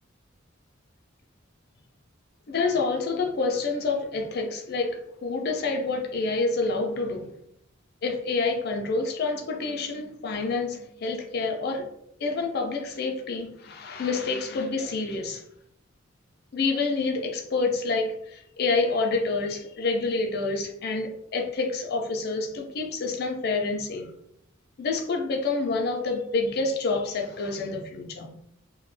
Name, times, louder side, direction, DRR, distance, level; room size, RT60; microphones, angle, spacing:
voice 1, 2.5-7.3 8.0-11.9 12.2-15.4 16.5-24.1 24.8-28.3, left 3 dB, 50° left, 3 dB, 0.4 m, -28 dB
2.2 x 2.0 x 3.1 m, 0.74 s
head